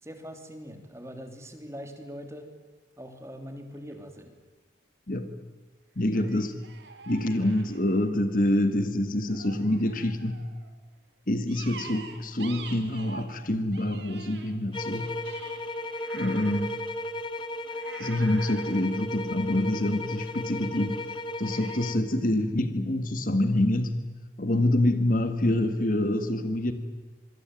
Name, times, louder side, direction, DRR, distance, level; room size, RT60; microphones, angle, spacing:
voice 1, 0.0-2.5 3.0-4.3, equal, 15° right, 6 dB, 3.3 m, -42 dB
sound 1, 3.9-4.0 6.1-8.4 9.3-10.7 11.5-13.4 13.7-16.7 17.7-20.0 21.4-21.9, right 5 dB, 70° right, 3.3 m, -46 dB
voice 2, 5.9-6.6 7.1-10.5 11.3-15.1 16.1-16.7 18.0-21.0 21.4-24.0 24.4-26.7, left 1 dB, 45° left, 9 dB, 1.8 m, -26 dB
sound 2, 14.7-22.1, left 1 dB, 25° left, 1.6 m, -35 dB
26.0 x 23.0 x 9.1 m, 1.3 s
head